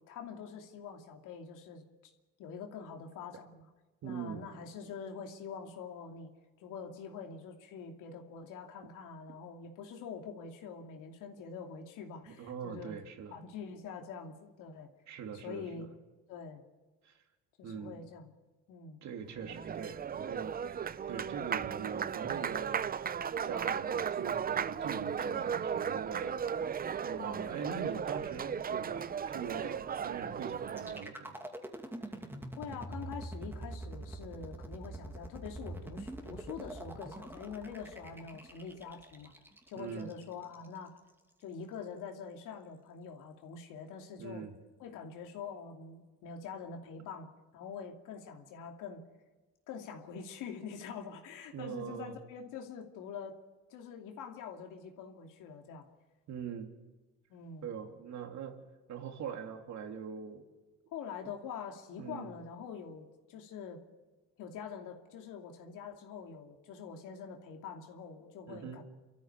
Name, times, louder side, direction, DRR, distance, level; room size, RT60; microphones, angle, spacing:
voice 1, 0.1-1.8 2.4-3.7 4.0-6.3 6.6-13.0 13.3-14.9 15.3-15.9 16.3-16.6 17.6-18.3 18.7-19.0 25.2-25.6 27.2-27.6 32.6-39.3 39.7-41.0 41.4-44.4 44.8-49.0 49.7-53.4 53.7-55.9 57.3-57.7 60.9-63.8 64.4-68.8, left 6 dB, 80° left, 3 dB, 2.7 m, -45 dB
voice 2, 4.0-4.5 12.3-13.3 15.1-15.9 17.0-17.2 17.6-18.1 19.0-22.8 23.4-31.4 39.7-40.1 44.2-44.5 51.5-52.2 56.3-56.7 57.6-58.6 58.9-60.4 61.2-61.3 62.0-62.3 68.5-68.8, right 7 dB, 65° right, 4 dB, 3.1 m, -42 dB
Applause, 19.3-31.1, right 7 dB, 30° right, 0.6 m, -36 dB
sound 1, 30.7-40.7, right 1 dB, 5° right, 2.4 m, -45 dB
29.0 x 14.0 x 6.9 m, 1.2 s
cardioid pair, 105°, 31 cm